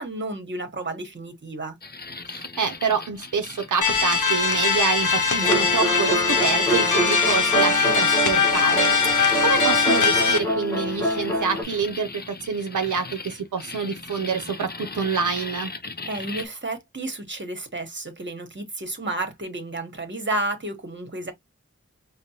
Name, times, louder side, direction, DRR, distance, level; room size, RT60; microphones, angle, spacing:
voice 1, 0.0-1.8 16.0-21.3, right 2 dB, 40° right, 1.0 m, -31 dB
sound 1, 1.8-16.5, left 3 dB, 35° left, 0.6 m, -38 dB
voice 2, 2.3-15.7, right 5 dB, 90° right, 0.5 m, -27 dB
sound 2, 3.8-10.4, left 5 dB, 85° left, 0.7 m, -21 dB
sound 3, 5.4-11.6, right 2 dB, 10° left, 1.1 m, -26 dB
5.0 x 2.1 x 2.7 m
wide cardioid pair, 55°, 30 cm